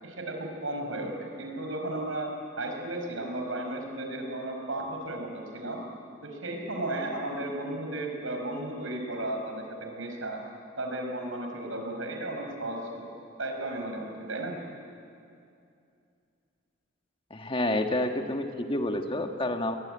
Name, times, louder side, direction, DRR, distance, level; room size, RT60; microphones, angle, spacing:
voice 1, 0.0-2.3 2.6-5.8 6.2-10.4 10.8-13.1 13.4-14.6, right 1 dB, 85° right, 3 dB, 5.3 m, -34 dB
voice 2, 17.3-19.7, left 1 dB, 25° left, 5 dB, 1.6 m, -29 dB
23.0 x 21.5 x 10.0 m, 2.5 s
head